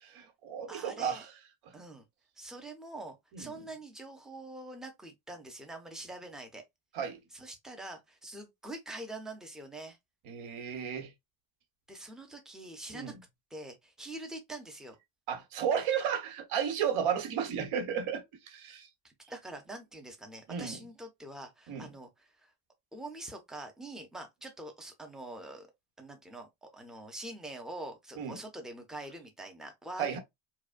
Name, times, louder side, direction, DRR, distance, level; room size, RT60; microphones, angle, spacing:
voice 1, 0.0-1.3 3.3-3.5 6.9-7.2 10.3-11.1 12.9-13.1 15.3-18.9 20.5-20.8 21.7-21.9 28.2-28.4 30.0-30.2, right 8 dB, 85° right, 1.1 m, -33 dB
voice 2, 0.7-1.3 1.7-2.1 2.4-6.6 7.3-10.0 11.9-13.1 13.5-15.0 19.0-22.5 22.9-25.7 26.0-30.2, right 2 dB, ahead, 0.4 m, -45 dB
4.8 x 2.1 x 2.4 m
cardioid pair, 180°, 48 cm